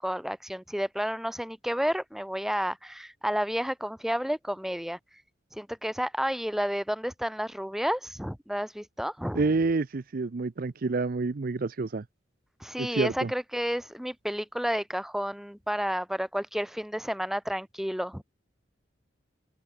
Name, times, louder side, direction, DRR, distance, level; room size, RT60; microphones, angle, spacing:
voice 1, 0.0-5.0 5.5-9.4 12.6-18.2, equal, ahead, 1.6 m, -31 dB
voice 2, 9.3-12.0 12.8-13.3, right 3 dB, 50° right, 0.5 m, -28 dB
open air
head